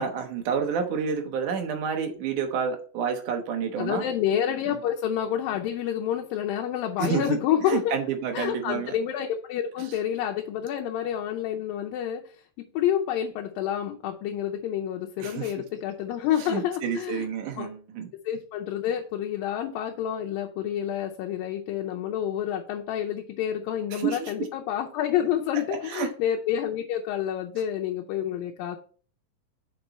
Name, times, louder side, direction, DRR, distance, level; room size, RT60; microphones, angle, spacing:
voice 1, 0.0-4.0 4.7-4.8 7.0-9.0 15.2-15.5 16.4-18.1 23.9-24.5 25.8-26.1, right 6 dB, 70° right, 2.5 m, -29 dB
voice 2, 3.8-8.0 8.3-12.2 12.6-17.3 17.6-17.7 18.3-28.8, left 10 dB, 80° left, 2.4 m, -28 dB
6.6 x 5.2 x 4.2 m
omnidirectional pair, 4.1 m